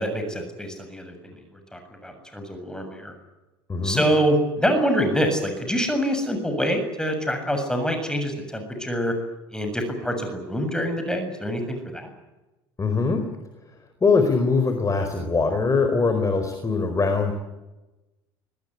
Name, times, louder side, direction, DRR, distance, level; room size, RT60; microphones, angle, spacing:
voice 1, 0.0-1.4 1.7-3.1 3.8-9.1 9.5-12.1, equal, 5° left, 6 dB, 7.2 m, -25 dB
voice 2, 3.7-4.0 12.8-13.2 14.0-17.3, left 4 dB, 25° left, 6 dB, 4.7 m, -22 dB
23.5 x 21.0 x 9.9 m, 1.1 s
hypercardioid pair, 70°, 14 cm